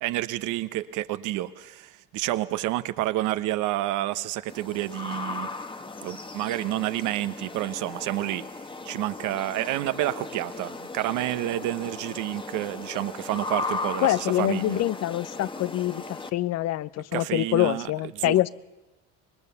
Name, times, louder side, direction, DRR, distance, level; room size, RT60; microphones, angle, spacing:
voice 1, 0.0-5.5 6.0-14.8 17.1-18.5, right 15 dB, 70° right, 1.1 m, -29 dB
sound 1, 4.5-16.3, left 3 dB, 15° left, 1.2 m, -37 dB
voice 2, 14.0-18.5, left 14 dB, 55° left, 0.7 m, -25 dB
25.5 x 20.5 x 7.0 m
supercardioid pair, 90°, 31 cm